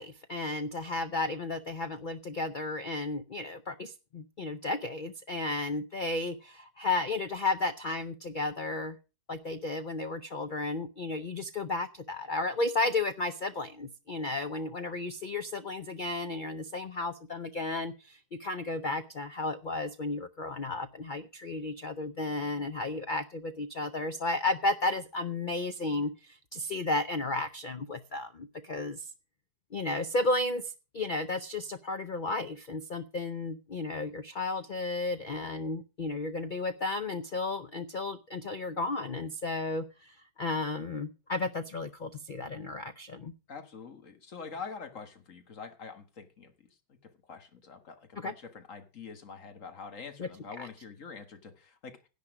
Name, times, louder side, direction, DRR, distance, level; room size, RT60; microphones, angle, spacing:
voice 1, 0.0-9.0 9.3-29.1 29.7-30.6 30.9-43.3 48.2-48.3 50.2-50.3 50.6-50.7, left 2 dB, 90° left, 0.4 m, -33 dB
voice 2, 43.5-46.5 47.0-52.0, left 5 dB, 50° left, 1.8 m, -45 dB
10.5 x 9.8 x 5.0 m
omnidirectional pair, 1.8 m